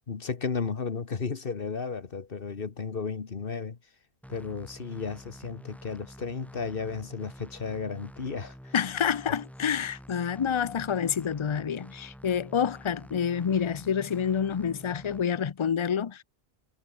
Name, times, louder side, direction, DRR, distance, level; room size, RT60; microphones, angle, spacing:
voice 1, 0.1-3.8 4.3-8.7, left 5 dB, 60° left, 1.5 m, -34 dB
sound 1, 4.2-15.2, equal, ahead, 4.4 m, -48 dB
voice 2, 8.7-16.2, left 7 dB, 35° left, 0.5 m, -28 dB
omnidirectional pair, 1.1 m